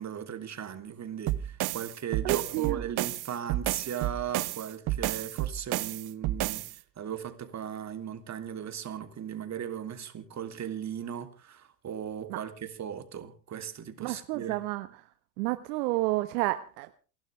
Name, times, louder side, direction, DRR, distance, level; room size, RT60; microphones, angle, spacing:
voice 1, 0.0-14.6, right 9 dB, 35° right, 3.2 m, -37 dB
sound 1, 1.3-6.8, right 15 dB, 50° right, 1.2 m, -31 dB
voice 2, 2.2-2.8 12.3-12.4 14.0-14.9 15.4-16.9, right 19 dB, 70° right, 1.4 m, -30 dB
29.0 x 12.0 x 3.4 m
hypercardioid pair, 90°, 49 cm